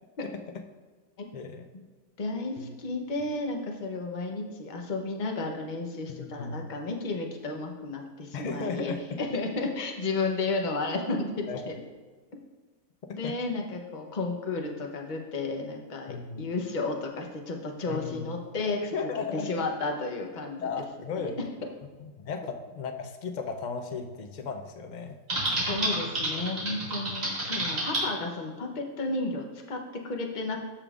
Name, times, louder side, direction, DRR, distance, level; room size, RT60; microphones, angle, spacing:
voice 1, 1.3-1.6 2.6-2.7 6.1-6.7 8.3-9.2 11.5-11.6 13.1-13.4 16.1-16.4 17.9-18.3 18.9-19.7 20.6-21.4 22.0-25.2, left 5 dB, 70° left, 5 dB, 0.4 m, -35 dB
voice 2, 2.2-8.9 9.2-11.7 13.2-18.9 19.3-20.7 21.2-21.3 25.7-30.6, left 3 dB, 40° left, 2 dB, 0.9 m, -32 dB
Typing, 25.3-28.0, right 1 dB, 60° right, 2.6 m, -29 dB
14.0 x 5.2 x 2.4 m, 1.4 s
omnidirectional pair, 1.6 m